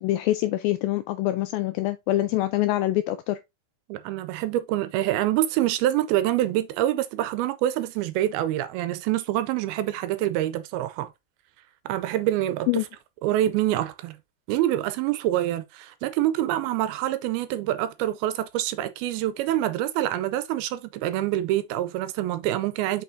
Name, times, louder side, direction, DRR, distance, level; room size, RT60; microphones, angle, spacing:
voice 1, 0.0-3.4 12.7-12.8, left 15 dB, 85° left, 2.1 m, -25 dB
voice 2, 3.9-11.1 11.9-12.8 13.2-14.2 14.5-23.0, right 13 dB, 85° right, 2.4 m, -26 dB
6.2 x 6.1 x 2.6 m
omnidirectional pair, 4.6 m